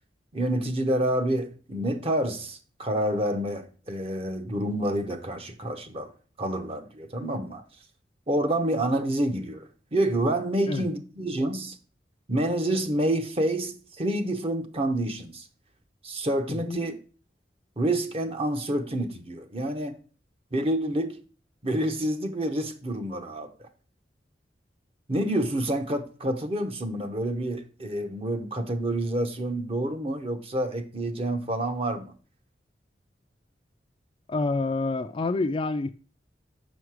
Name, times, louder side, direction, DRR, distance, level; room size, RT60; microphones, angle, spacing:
voice 1, 0.3-6.1 6.4-7.6 8.3-11.8 12.3-15.5 16.0-17.0 17.8-20.0 20.5-21.2 21.6-23.7 25.1-32.1, right 1 dB, 35° right, 0.8 m, -28 dB
voice 2, 34.3-35.9, left 3 dB, 30° left, 0.3 m, -27 dB
6.3 x 5.6 x 4.7 m
head